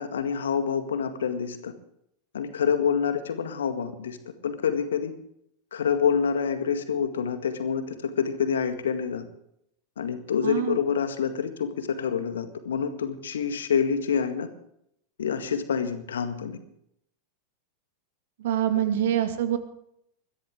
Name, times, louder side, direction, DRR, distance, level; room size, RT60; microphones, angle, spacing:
voice 1, 0.0-1.7 2.3-4.2 4.4-5.1 5.7-9.2 10.0-14.5 15.2-16.6, left 7 dB, 65° left, 8 dB, 1.9 m, -27 dB
voice 2, 10.4-10.8 18.4-19.6, right 11 dB, 55° right, 9 dB, 1.9 m, -25 dB
21.5 x 14.5 x 3.7 m, 0.73 s
figure-of-eight pair, 90°, 0 cm